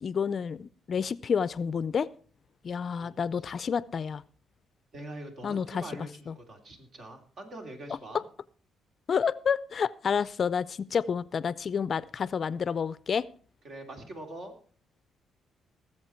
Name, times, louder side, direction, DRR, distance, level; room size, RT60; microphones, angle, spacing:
voice 1, 0.0-2.1 2.6-4.2 5.4-5.8 6.3-6.4 9.1-13.3, left 6 dB, 50° left, 19 dB, 0.5 m, -29 dB
voice 2, 4.9-8.2 13.6-14.5, right 1 dB, 55° right, 4 dB, 3.0 m, -43 dB
18.5 x 7.5 x 4.4 m, 0.42 s
cardioid pair, 90°, 0 cm